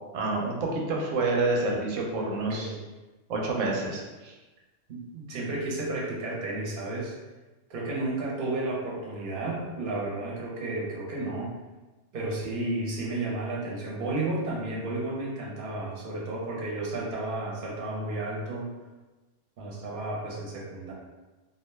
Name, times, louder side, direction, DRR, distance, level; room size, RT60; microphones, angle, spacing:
voice 1, 0.1-2.7 3.3-4.3, right 3 dB, 90° right, -1 dB, 1.0 m, -28 dB
voice 2, 2.3-2.8 4.9-7.1 7.7-11.5 12.1-18.7 19.6-20.9, right 2 dB, 50° right, -4 dB, 0.8 m, -32 dB
2.4 x 2.2 x 3.1 m, 1.2 s
omnidirectional pair, 1.3 m